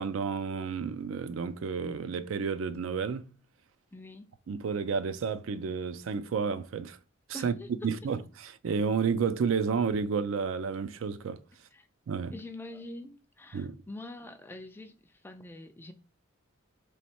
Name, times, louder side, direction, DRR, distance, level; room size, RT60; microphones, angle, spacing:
voice 1, 0.0-3.3 4.5-7.0 7.3-7.5 7.8-11.4 12.1-12.3 13.5-13.8, right 5 dB, 70° right, 0.4 m, -31 dB
voice 2, 3.9-4.3 7.3-7.7 11.7-11.9 12.3-15.9, left 1 dB, 10° left, 0.3 m, -45 dB
3.2 x 3.1 x 4.3 m
head